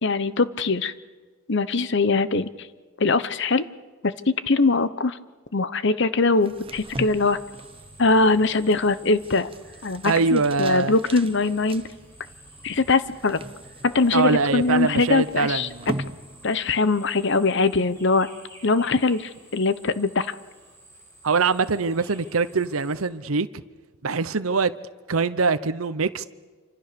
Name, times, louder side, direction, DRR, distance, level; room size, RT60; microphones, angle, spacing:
voice 1, 0.0-0.9 1.5-2.7 3.0-3.6 4.0-5.2 5.5-7.4 8.0-9.5 9.8-11.8 12.6-13.4 13.8-15.7 16.4-18.3 18.6-20.3, left 3 dB, 60° left, 1.0 m, -22 dB
sound 1, 6.4-16.9, right 2 dB, 25° right, 0.9 m, -40 dB
sound 2, 6.7-23.1, right 1 dB, 15° left, 7.7 m, -51 dB
voice 2, 10.0-10.9 14.1-15.9 21.2-23.6 24.0-24.7 25.1-26.3, right 4 dB, 80° right, 0.9 m, -23 dB
27.0 x 25.5 x 6.9 m
head